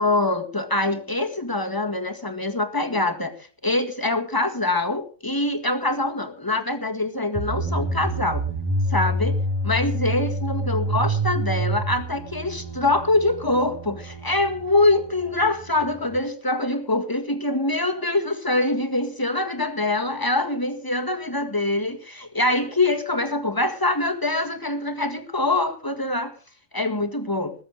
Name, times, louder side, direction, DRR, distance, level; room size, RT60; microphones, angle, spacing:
voice 1, 0.0-3.3 3.6-8.4 8.9-9.4 9.6-26.3 26.7-27.5, left 2 dB, 15° left, 7 dB, 1.8 m, -24 dB
sound 1, 7.4-16.2, right 1 dB, 20° right, 1.4 m, -28 dB
20.0 x 7.7 x 6.3 m, 0.40 s
omnidirectional pair, 1.3 m